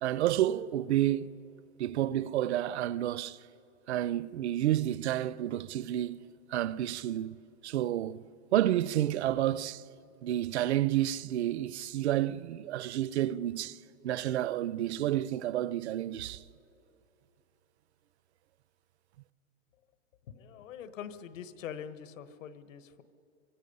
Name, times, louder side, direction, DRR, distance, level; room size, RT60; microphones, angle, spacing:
voice 1, 0.0-1.3 1.8-3.4 3.9-7.4 7.6-8.2 8.5-9.8 10.2-13.8 14.0-16.4, right 13 dB, 55° right, 0.6 m, -30 dB
voice 2, 20.3-23.0, left 8 dB, 75° left, 1.4 m, -44 dB
29.0 x 25.0 x 5.5 m
supercardioid pair, 170°, 39 cm